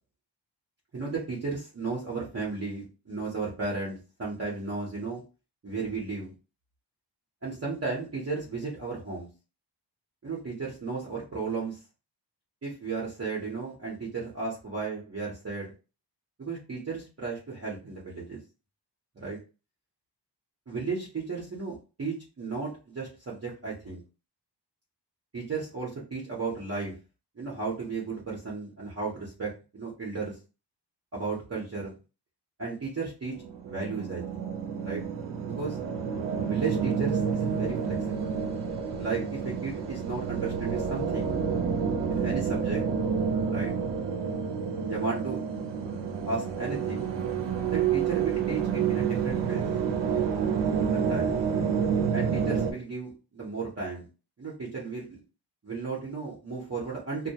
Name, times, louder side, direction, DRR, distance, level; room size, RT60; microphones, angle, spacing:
voice 1, 0.9-5.2 5.6-6.3 7.4-9.3 10.2-11.8 12.6-15.7 16.4-18.4 19.2-19.4 20.7-24.0 25.3-27.0 27.4-30.4 31.1-31.9 32.6-33.4 33.6-34.4 34.8-35.0 35.4-35.8 36.4-38.2 39.0-41.4 42.1-42.8 43.5-43.7 44.9-45.4 46.3-47.1 47.7-49.6 50.9-51.3 52.1-54.1 54.4-55.2 55.6-57.3, right 4 dB, 35° right, -5 dB, 0.7 m, -34 dB
sound 1, 33.3-52.7, right 6 dB, 85° right, 0.5 m, -29 dB
2.2 x 2.0 x 2.7 m, 0.33 s
wide cardioid pair, 110°, 42 cm